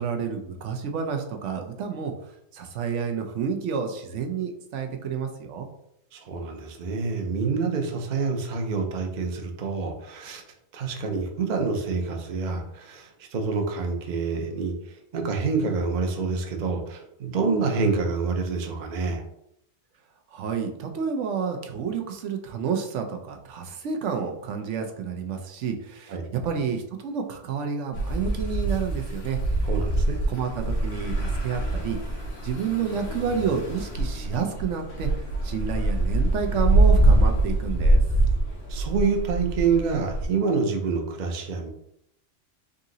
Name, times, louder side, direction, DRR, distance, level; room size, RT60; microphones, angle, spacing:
voice 1, 0.0-2.1 2.5-5.7 20.3-29.7 30.3-32.0 32.4-38.0, right 6 dB, 80° right, 4 dB, 1.0 m, -30 dB
voice 2, 6.1-10.4 10.7-19.2 26.1-26.3 29.7-30.2 38.7-41.7, right 4 dB, 45° right, 3 dB, 0.7 m, -27 dB
sound 1, 27.9-40.2, right 2 dB, 90° left, 1.4 m, -24 dB
3.9 x 2.7 x 3.7 m, 0.75 s
omnidirectional pair, 1.2 m